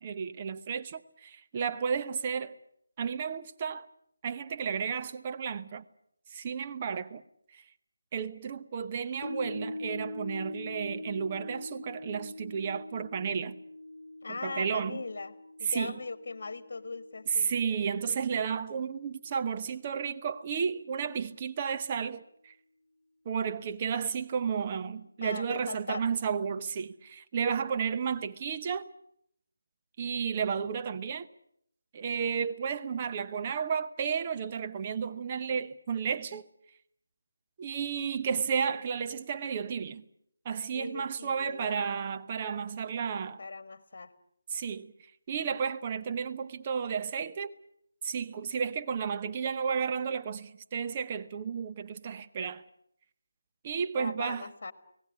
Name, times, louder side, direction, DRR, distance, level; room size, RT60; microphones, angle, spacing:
voice 1, 0.0-2.6 3.0-3.9 4.2-5.8 6.3-7.2 7.5-7.6 8.1-13.6 14.3-15.0 15.7-16.0 17.3-22.5 23.2-28.9 30.0-31.3 31.9-36.5 37.6-40.0 40.4-43.4 44.5-44.9 45.3-47.5 48.0-52.6 53.6-54.4, right 6 dB, 25° right, 0.9 m, -32 dB
sound 1, 9.2-19.6 20.0-20.1, left 2 dB, 65° left, 1.0 m, -44 dB
voice 2, 14.2-15.3 15.6-17.5 25.2-26.1 40.7-41.8 43.4-44.1 53.9-54.7, left 3 dB, 40° left, 1.6 m, -39 dB
30.0 x 18.5 x 8.5 m
figure-of-eight pair, 155°, 0 cm